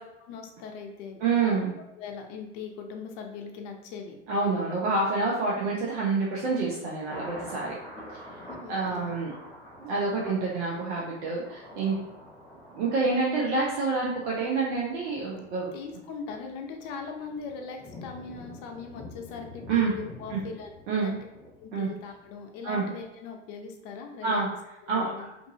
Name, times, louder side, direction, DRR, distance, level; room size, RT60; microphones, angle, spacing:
voice 1, 0.2-1.6 2.0-4.2 5.6-5.7 8.4-9.2 10.2-10.6 15.7-21.2 21.6-24.4 24.8-25.3, left 5 dB, 50° left, 3 dB, 0.6 m, -40 dB
voice 2, 1.2-1.7 4.3-7.8 8.7-9.3 9.8-12.0 12.7-15.7 19.7-19.9 20.3-20.4 20.9-21.1 21.7-21.9 22.6-22.8 24.2-24.5 24.9-25.3, right 4 dB, 65° right, -4 dB, 0.7 m, -27 dB
Thunder, 5.2-22.3 22.7-22.8, left 1 dB, 10° left, 1.2 m, -47 dB
2.6 x 2.6 x 2.7 m, 0.86 s
hypercardioid pair, 95°, 35 cm